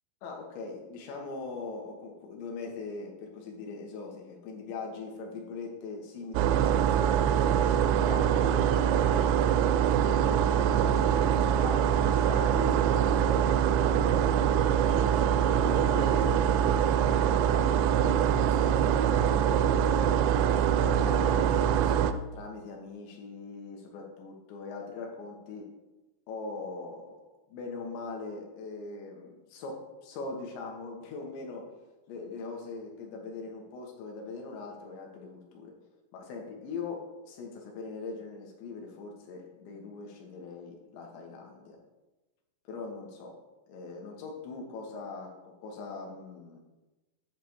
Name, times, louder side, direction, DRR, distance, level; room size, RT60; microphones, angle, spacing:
voice 1, 0.2-7.2 7.8-9.3 9.7-14.2 14.7-20.0 20.8-22.0 22.3-25.7 26.3-27.2 27.5-31.6 32.1-35.7 36.1-37.0 37.3-41.8 42.7-43.3 43.7-46.6, left 4 dB, 80° left, 0 dB, 3.6 m, -41 dB
sound 1, 6.4-22.1, right 9 dB, 85° right, 2.8 m, -24 dB
10.0 x 3.4 x 7.1 m, 1.1 s
omnidirectional pair, 5.0 m